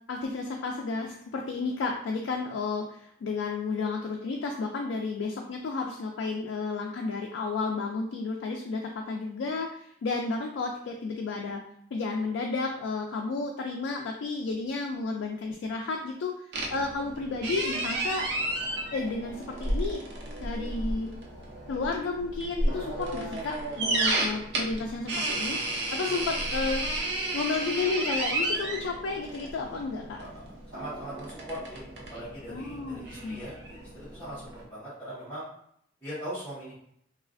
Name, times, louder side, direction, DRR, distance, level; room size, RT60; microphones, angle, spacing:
voice 1, 0.1-11.6 11.9-16.3 16.7-18.3 18.9-20.0 20.4-21.2 21.7-25.6 25.9-26.8 27.3-30.2 32.5-33.4, left 3 dB, 90° left, 1 dB, 0.3 m, -32 dB
sound 1, 16.5-34.6, right 1 dB, 70° right, 0.6 m, -33 dB
voice 2, 30.1-35.4 36.0-36.7, equal, 10° left, -14 dB, 1.1 m, -41 dB
3.1 x 2.4 x 2.4 m, 0.70 s
head